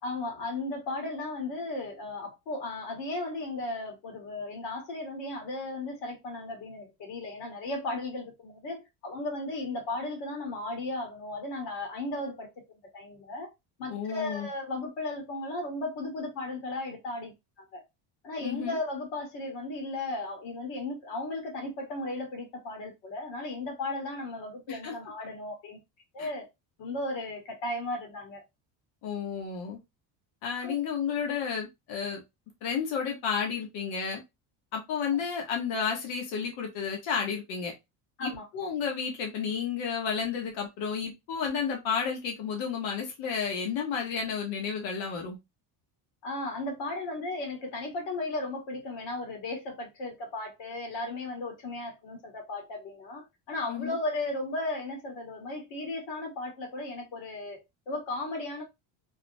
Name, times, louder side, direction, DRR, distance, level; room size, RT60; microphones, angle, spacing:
voice 1, 0.0-12.5 12.9-13.5 13.8-17.8 18.2-25.8 26.1-26.5 26.8-28.4 30.6-30.8 38.2-38.5 46.2-58.6, left 2 dB, 70° left, 1.7 m, -35 dB
voice 2, 13.9-14.5 18.4-18.8 24.7-24.9 26.2-26.3 29.0-29.8 30.4-32.2 32.6-34.2 34.7-37.7 38.2-45.4 53.7-54.0, left 6 dB, 85° left, 1.2 m, -32 dB
3.9 x 2.1 x 2.7 m
cardioid pair, 115°, 45 cm